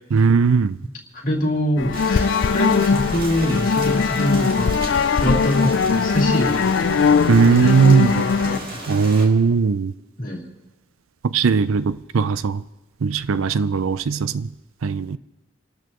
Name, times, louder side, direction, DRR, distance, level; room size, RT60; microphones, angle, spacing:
voice 1, 0.1-0.8 7.3-8.2 8.9-9.9 11.3-12.6 13.0-14.5 14.8-15.2, right 5 dB, 75° right, 0.5 m, -18 dB
voice 2, 1.1-7.0 7.4-8.8 10.2-10.5, left 1 dB, 40° left, 2.8 m, -25 dB
sound 1, 1.8-8.6, left 5 dB, 55° left, 0.4 m, -20 dB
Rain, 1.9-9.2, right 1 dB, 45° right, 2.5 m, -34 dB
29.0 x 12.5 x 3.0 m
head